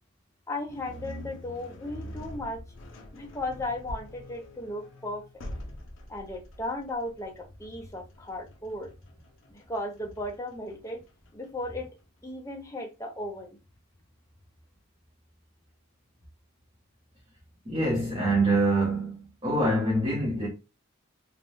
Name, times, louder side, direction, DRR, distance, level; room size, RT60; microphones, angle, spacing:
voice 1, 0.5-2.6 3.1-5.4 6.1-8.9 9.5-11.0 11.3-11.9 12.2-13.6, left 1 dB, 15° left, 0.5 m, -36 dB
sound 1, 0.7-11.8, left 1 dB, 65° left, 0.5 m, -45 dB
voice 2, 17.6-20.5, right 2 dB, 25° right, 0.8 m, -25 dB
3.2 x 2.2 x 2.6 m
head